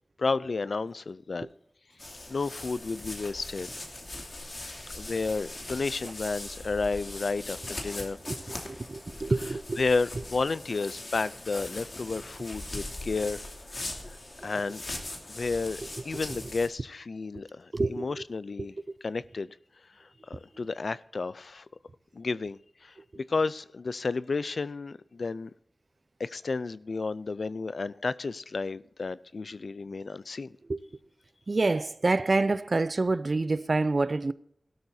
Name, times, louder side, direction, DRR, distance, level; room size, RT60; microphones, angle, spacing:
voice 1, 0.2-1.5 2.3-3.7 4.9-8.2 9.8-13.4 14.4-14.8 15.3-18.7 19.0-19.5 20.3-21.6 22.1-25.5 26.2-30.5, left 4 dB, 75° left, 0.4 m, -32 dB
sound 1, 2.0-16.7, left 2 dB, 50° left, 2.7 m, -40 dB
voice 2, 8.3-9.8 16.1-16.4 17.7-18.2 18.6-18.7 23.0-23.1 30.7-30.8 31.5-34.3, right 3 dB, 55° right, 0.5 m, -28 dB
18.0 x 12.5 x 2.8 m
wide cardioid pair, 85°, 0 cm